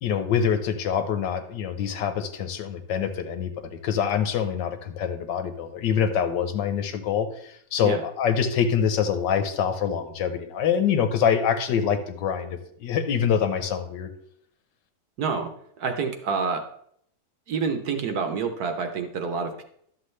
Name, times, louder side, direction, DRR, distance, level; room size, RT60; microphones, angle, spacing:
voice 1, 0.0-14.1, left 7 dB, 80° left, 8 dB, 1.4 m, -25 dB
voice 2, 15.2-15.5 15.8-16.6 17.5-19.6, right 5 dB, 60° right, 6 dB, 1.3 m, -28 dB
11.5 x 7.0 x 3.2 m, 0.67 s
omnidirectional pair, 2.0 m